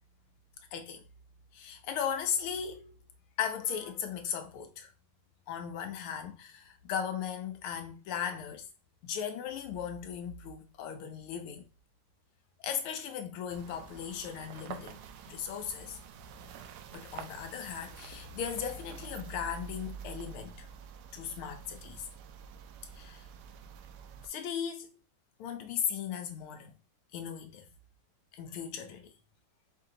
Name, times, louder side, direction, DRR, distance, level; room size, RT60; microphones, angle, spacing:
voice 1, 0.7-1.0 1.5-3.0 3.4-4.9 5.5-8.6 9.0-11.7 12.6-15.0 15.3-16.0 16.9-20.7 21.1-22.0 22.9-23.2 24.2-24.9 25.4-26.8 27.1-27.7 28.3-29.1, left 8 dB, 90° left, 1.6 m, -37 dB
sound 1, 13.5-24.3, right 6 dB, 80° right, 0.9 m, -47 dB
4.3 x 2.8 x 3.8 m
omnidirectional pair, 2.3 m